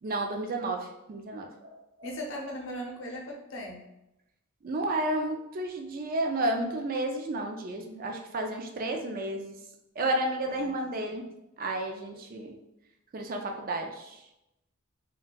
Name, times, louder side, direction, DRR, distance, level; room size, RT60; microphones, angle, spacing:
voice 1, 0.0-2.1 4.6-9.6 10.0-11.3 11.6-12.6 13.1-14.2, right 1 dB, 45° right, 3 dB, 0.4 m, -32 dB
voice 2, 2.0-3.8 10.5-10.8, equal, 65° left, 0 dB, 0.7 m, -38 dB
4.1 x 2.3 x 2.2 m, 0.89 s
head